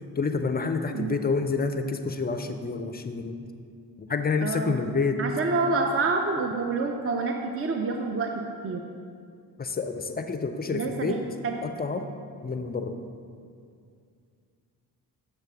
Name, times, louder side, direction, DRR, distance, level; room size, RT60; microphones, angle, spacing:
voice 1, 0.2-3.4 4.0-5.2 9.6-11.2 11.6-12.1 12.4-13.0, left 4 dB, 20° left, 7 dB, 0.4 m, -28 dB
voice 2, 4.4-4.8 5.2-8.3 8.6-8.8 10.7-11.2 11.4-11.5, right 3 dB, 30° right, 3 dB, 0.5 m, -27 dB
6.7 x 3.4 x 5.9 m, 2.3 s
hypercardioid pair, 45°, 48 cm